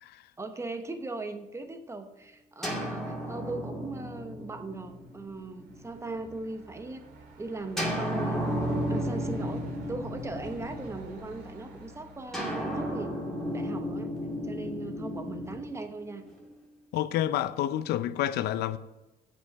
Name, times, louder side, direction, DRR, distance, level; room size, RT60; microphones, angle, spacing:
voice 1, 0.4-7.0 7.4-14.1 14.4-16.2, right 2 dB, 15° right, 1.0 m, -39 dB
sound 1, 2.6-6.4 7.8-11.3 12.3-16.5, equal, ahead, 2.4 m, -34 dB
Truck, 4.7-14.1, right 3 dB, 75° right, 2.2 m, -50 dB
voice 2, 16.9-18.8, left 12 dB, 75° left, 0.5 m, -29 dB
8.2 x 5.5 x 5.9 m
cardioid pair, 110°, 17 cm